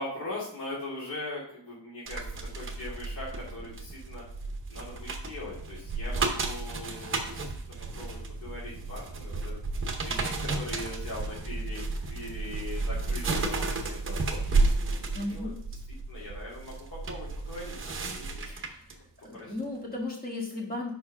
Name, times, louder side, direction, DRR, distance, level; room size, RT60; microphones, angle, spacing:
voice 1, 0.0-2.2 2.5-4.2 4.7-9.6 10.0-11.8 12.1-14.4 14.9-15.5 16.1-16.8 17.0-18.4 19.3-19.5, left 2 dB, 50° left, -8 dB, 2.7 m, -41 dB
sound 1, 2.1-18.9 19.4-19.6, right 3 dB, 30° right, 0.8 m, -32 dB
voice 2, 15.1-15.5 18.4-18.9 19.2-20.9, left 2 dB, 20° left, -1 dB, 1.5 m, -35 dB
5.2 x 4.6 x 5.4 m, 0.64 s
wide cardioid pair, 175°, 41 cm